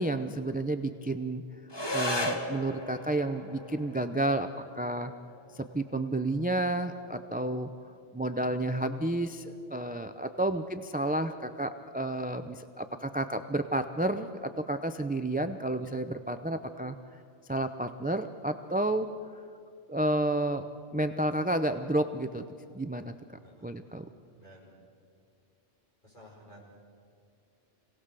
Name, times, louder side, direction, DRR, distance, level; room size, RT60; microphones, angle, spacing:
voice 1, 0.0-1.4 1.9-4.5 4.7-5.1 5.5-7.7 8.1-17.0 17.5-19.1 19.9-20.7 20.9-22.4 22.7-23.1 23.6-24.1, right 1 dB, 10° right, 8 dB, 0.4 m, -31 dB
sound 1, 1.7-10.7, left 1 dB, 20° left, 1.3 m, -39 dB
voice 2, 24.4-24.7 26.0-26.6, equal, 40° left, -4 dB, 6.6 m, -54 dB
27.0 x 18.0 x 6.8 m, 2.3 s
omnidirectional pair, 1.3 m